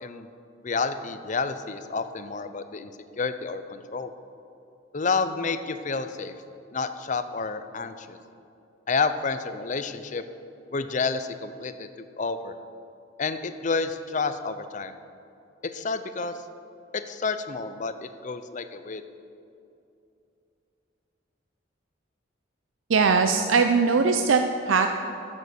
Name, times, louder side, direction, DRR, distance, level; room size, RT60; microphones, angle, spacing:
voice 1, 0.6-2.9 3.2-4.1 4.9-6.3 6.7-8.2 8.9-10.2 10.7-11.9 12.2-12.6 13.2-14.9 15.7-16.4 16.9-19.0, left 4 dB, 40° left, 10 dB, 0.6 m, -29 dB
voice 2, 22.9-24.9, right 5 dB, 90° right, 6 dB, 0.5 m, -20 dB
12.0 x 7.7 x 6.6 m, 2.6 s
head